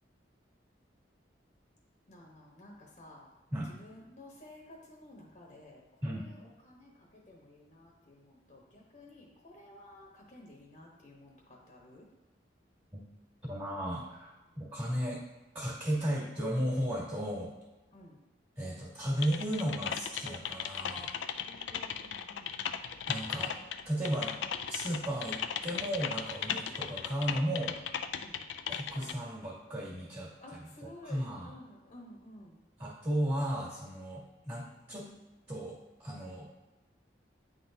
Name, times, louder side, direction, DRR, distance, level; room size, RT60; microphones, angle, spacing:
voice 1, 2.1-3.3 3.7-12.1 17.9-18.2 21.5-22.7 28.2-28.4 30.4-32.6, left 1 dB, 40° left, -2 dB, 1.0 m, -53 dB
voice 2, 13.5-15.2 15.5-17.5 18.6-21.1 23.1-23.6 23.8-24.4 24.7-27.8 28.7-31.5 32.8-35.1 35.5-36.6, equal, 35° right, -6 dB, 1.9 m, -35 dB
Typing, 19.2-29.1, left 8 dB, 80° left, 0.4 m, -37 dB
9.5 x 3.9 x 2.7 m, 1.1 s
head